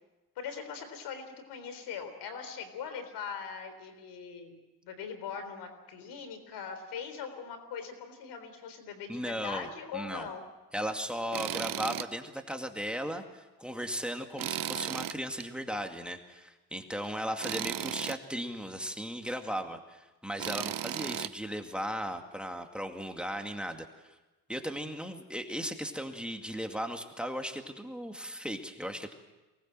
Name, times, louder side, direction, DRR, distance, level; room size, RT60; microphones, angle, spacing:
voice 1, 0.4-10.4, left 6 dB, 90° left, 9 dB, 3.8 m, -41 dB
voice 2, 9.1-10.3 10.7-24.2 24.5-29.1, equal, 5° right, 5 dB, 2.2 m, -37 dB
Tools, 11.3-12.1 12.5-12.6 14.4-15.5 17.4-18.2 20.4-21.3, right 11 dB, 55° right, 0.8 m, -35 dB
23.5 x 19.5 x 7.6 m, 1.1 s
cardioid pair, 85°, 39 cm